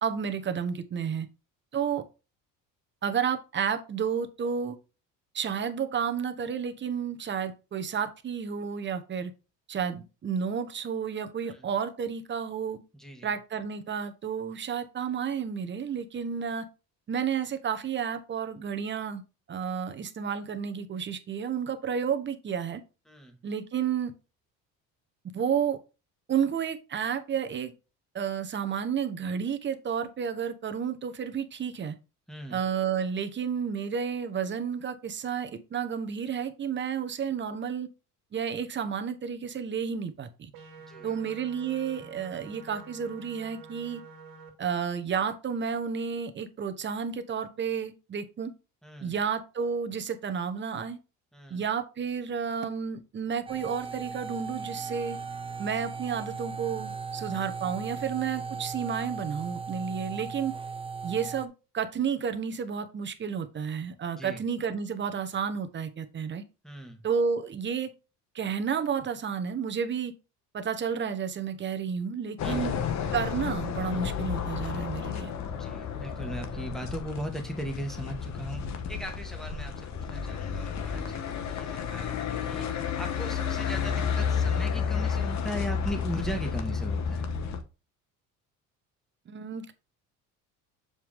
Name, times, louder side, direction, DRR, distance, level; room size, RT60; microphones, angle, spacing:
voice 1, 0.0-1.3 1.7-2.0 3.0-4.8 5.3-9.3 9.7-12.8 13.2-16.7 17.1-19.2 19.5-22.8 23.4-24.1 25.3-25.8 26.3-27.7 28.1-31.9 32.5-37.9 38.3-40.5 41.0-44.0 44.6-48.5 49.0-51.0 51.5-55.2 55.6-60.5 61.0-66.4 67.0-67.9 68.3-70.1 70.5-72.7 73.1-75.3 89.3-89.7, right 7 dB, 35° right, 1.1 m, -31 dB
voice 2, 12.9-13.3 23.1-23.4 32.3-32.6 40.9-41.1 48.8-49.1 51.3-51.6 64.1-64.4 66.6-67.0 72.4-72.7 75.5-87.3, equal, ahead, 1.7 m, -38 dB
sound 1, 40.5-44.5, right 4 dB, 80° right, 2.2 m, -48 dB
sound 2, 53.5-61.5, right 5 dB, 15° right, 0.7 m, -37 dB
sound 3, 72.4-87.6, left 7 dB, 55° left, 1.2 m, -31 dB
7.1 x 4.8 x 3.6 m
cardioid pair, 105°, 33 cm